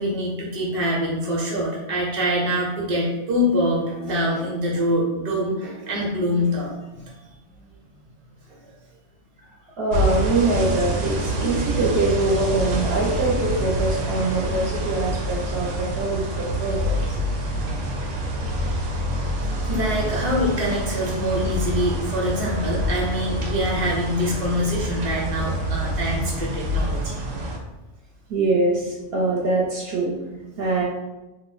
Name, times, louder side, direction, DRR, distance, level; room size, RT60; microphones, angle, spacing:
voice 1, 0.0-6.7 7.0-7.1 8.6-8.7 19.6-27.2, equal, 35° right, -3 dB, 0.7 m, -24 dB
voice 2, 9.8-17.0 28.3-30.8, right 2 dB, 60° right, -4 dB, 0.9 m, -23 dB
sound 1, 9.9-27.6, equal, 90° right, 0.9 m, -26 dB
2.7 x 2.1 x 3.9 m, 1.0 s
omnidirectional pair, 1.2 m